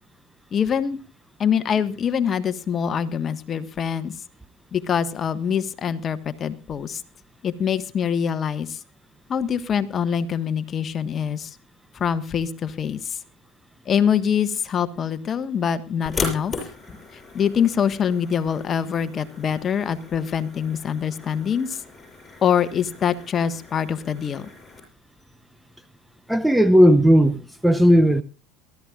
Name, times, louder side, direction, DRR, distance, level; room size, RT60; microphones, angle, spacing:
voice 1, 0.5-1.0 1.4-4.1 4.7-7.0 7.4-8.8 9.3-11.6 11.9-13.2 13.8-16.5 17.3-21.8 22.4-24.5, left 8 dB, 35° left, 1.4 m, -24 dB
sound 1, 16.1-24.8, left 4 dB, 20° left, 6.8 m, -37 dB
voice 2, 26.3-28.2, equal, 5° right, 0.7 m, -15 dB
22.5 x 13.0 x 2.4 m
supercardioid pair, 95°, 0 cm